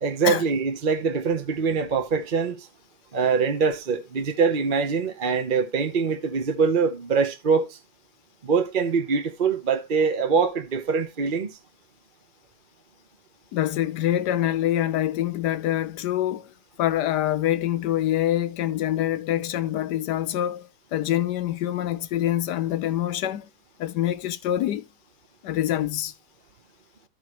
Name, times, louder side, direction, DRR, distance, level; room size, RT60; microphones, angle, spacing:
voice 1, 0.0-2.7 3.1-7.8 8.4-11.6, right 5 dB, 35° right, 1.0 m, -24 dB
voice 2, 13.5-23.5 23.8-24.8 25.4-26.1, left 12 dB, 90° left, 1.3 m, -25 dB
13.0 x 5.7 x 3.1 m
omnidirectional pair, 1.8 m